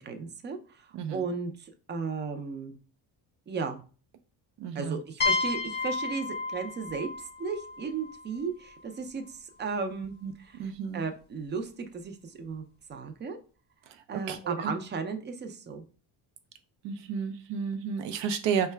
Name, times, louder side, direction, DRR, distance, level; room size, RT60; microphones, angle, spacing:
voice 1, 0.0-2.8 3.5-3.8 4.7-7.1 7.4-12.6 12.9-13.4 14.1-15.8, right 5 dB, 25° right, 7 dB, 0.3 m, -35 dB
voice 2, 0.9-1.2 4.6-5.0 10.2-10.3 10.6-11.0 13.9-14.7 16.8-18.7, right 7 dB, 85° right, 8 dB, 0.5 m, -32 dB
sound 1, 5.2-8.8, left 4 dB, 25° left, 0.6 m, -32 dB
4.5 x 2.2 x 3.2 m, 0.38 s
cardioid pair, 150°, 43 cm